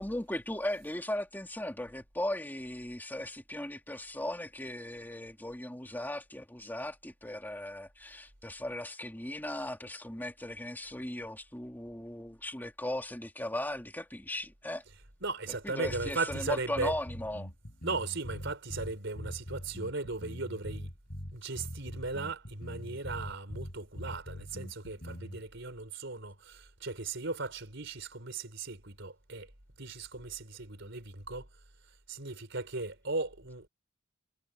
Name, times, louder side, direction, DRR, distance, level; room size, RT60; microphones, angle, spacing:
voice 1, 0.0-14.8 15.6-17.5, left 1 dB, 10° left, 2.9 m, -37 dB
voice 2, 15.2-16.9 17.8-20.9 21.3-29.5 29.8-31.5 32.1-33.7, right 3 dB, 65° right, 4.8 m, -37 dB
sound 1, 15.8-25.4, equal, 50° left, 5.5 m, -42 dB
head